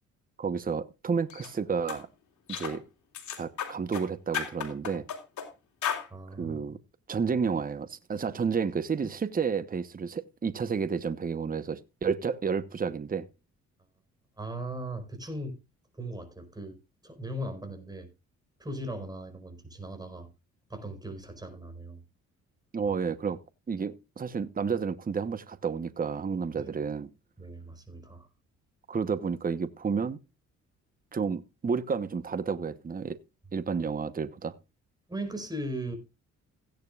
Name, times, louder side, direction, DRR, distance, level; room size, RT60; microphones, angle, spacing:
voice 1, 0.4-2.1 2.5-2.8 3.4-5.0 6.4-6.8 7.1-13.3 22.7-23.4 23.7-27.1 28.9-30.2 31.1-33.2 33.5-34.5, right 5 dB, 30° right, 1.0 m, -31 dB
sound 1, 1.3-1.5 1.9-2.0 2.5-2.8 3.1-4.1 4.3-5.5 5.8-6.1, left 8 dB, 70° left, 3.5 m, -34 dB
voice 2, 6.1-6.8 9.0-9.1 14.4-15.6 15.9-18.1 18.6-20.3 20.7-22.0 26.6-26.7 27.4-28.3 35.1-36.0, right 1 dB, 15° right, 4.9 m, -38 dB
16.5 x 10.5 x 2.4 m
cardioid pair, 90°, 30 cm